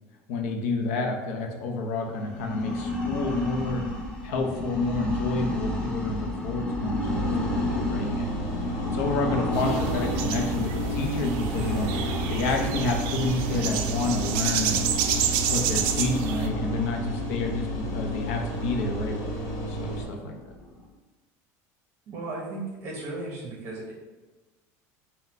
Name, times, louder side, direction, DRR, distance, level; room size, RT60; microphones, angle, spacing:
voice 1, 0.3-3.9 4.2-8.4 8.8-11.9 12.3-14.8 15.5-19.2 19.7-20.3, left 3 dB, 85° left, 2 dB, 0.7 m, -29 dB
sound 1, 2.1-20.9, left 1 dB, 10° left, 0.6 m, -33 dB
sound 2, 7.0-20.0, right 1 dB, 65° left, 1.0 m, -32 dB
sound 3, 9.5-16.5, right 8 dB, 65° right, 0.4 m, -30 dB
voice 2, 22.1-23.9, right 2 dB, 40° right, -3 dB, 0.9 m, -35 dB
4.0 x 2.2 x 4.2 m, 1.2 s
cardioid pair, 140°, 8 cm